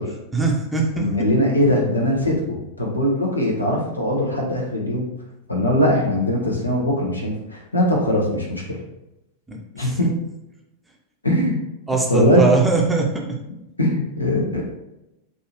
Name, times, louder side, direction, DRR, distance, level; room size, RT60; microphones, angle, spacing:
voice 1, 0.3-1.1 9.5-10.0 11.9-13.2, right 3 dB, 5° right, -1 dB, 0.7 m, -21 dB
voice 2, 1.0-5.0 5.5-8.6 9.7-10.1 11.2-11.6 12.1-12.4 13.8-14.6, left 1 dB, 80° left, -1 dB, 0.9 m, -21 dB
4.5 x 2.8 x 3.0 m, 0.93 s
figure-of-eight pair, 90°, 0 cm